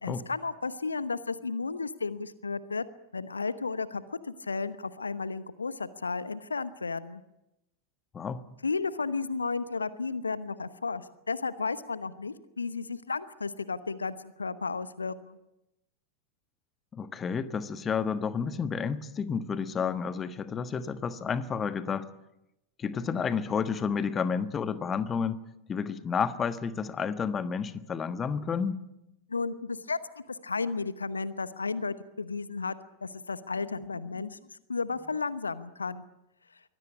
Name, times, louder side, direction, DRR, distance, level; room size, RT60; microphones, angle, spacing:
voice 1, 0.0-2.8 3.1-7.2 8.6-15.4 29.3-30.0 30.3-36.0, left 4 dB, 75° left, 15 dB, 1.0 m, -33 dB
voice 2, 16.9-22.1 22.8-25.4 25.7-28.8 34.2-34.3, left 6 dB, 20° left, 12 dB, 1.3 m, -31 dB
23.5 x 17.0 x 9.9 m, 0.90 s
figure-of-eight pair, 90°, 0 cm